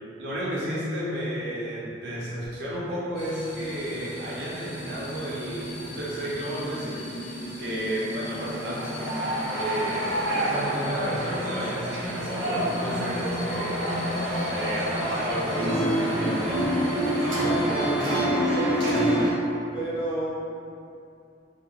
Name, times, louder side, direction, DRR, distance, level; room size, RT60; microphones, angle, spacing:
voice 1, 0.2-7.0 7.6-8.9 9.5-13.9 14.5-16.6, right 1 dB, 60° right, -6 dB, 0.5 m, -32 dB
sound 1, 3.1-18.2, left 1 dB, 85° left, 0.7 m, -37 dB
sound 2, 8.2-19.3, right 1 dB, 90° right, 1.0 m, -27 dB
voice 2, 17.4-19.0 19.7-20.3, right 1 dB, 25° left, -7 dB, 0.5 m, -32 dB
2.9 x 2.1 x 2.3 m, 2.6 s
head